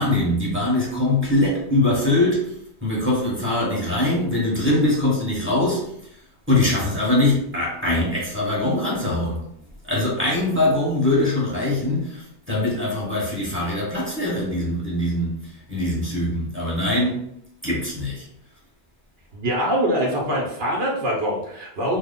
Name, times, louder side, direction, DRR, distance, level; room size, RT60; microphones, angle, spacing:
voice 1, 0.0-2.5 2.8-5.9 6.5-9.4 9.8-15.4 15.7-17.2 17.6-18.3, left 1 dB, 10° right, -6 dB, 1.1 m, -22 dB
voice 2, 19.3-22.0, equal, 70° right, -2 dB, 1.0 m, -23 dB
3.0 x 2.1 x 3.6 m, 0.71 s
omnidirectional pair, 1.0 m